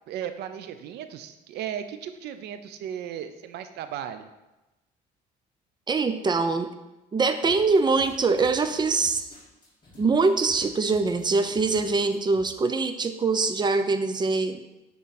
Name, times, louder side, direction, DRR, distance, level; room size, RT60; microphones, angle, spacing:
voice 1, 0.1-4.3, right 9 dB, 75° right, 9 dB, 0.7 m, -36 dB
voice 2, 5.9-6.7 7.1-9.3 10.0-14.6, right 4 dB, 25° right, 9 dB, 0.7 m, -23 dB
sound 1, 7.4-12.4, left 1 dB, 25° left, 3.1 m, -51 dB
9.5 x 3.9 x 5.9 m, 1.0 s
cardioid pair, 110°, 17 cm